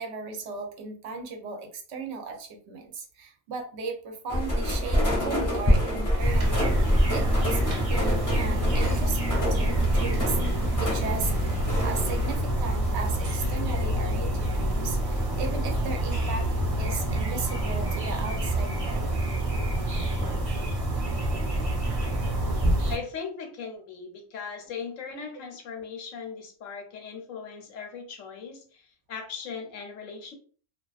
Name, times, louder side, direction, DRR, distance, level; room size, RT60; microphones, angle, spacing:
voice 1, 0.0-10.4 10.8-16.5 16.8-19.2, right 4 dB, 65° right, 3 dB, 0.8 m, -36 dB
sound 1, 4.3-12.4, equal, 20° left, 0.6 m, -27 dB
sound 2, 6.2-23.0, right 1 dB, 40° right, 0.5 m, -27 dB
voice 2, 22.9-30.3, left 5 dB, 80° left, 4 dB, 1.0 m, -38 dB
2.3 x 2.3 x 2.3 m, 0.42 s
omnidirectional pair, 1.4 m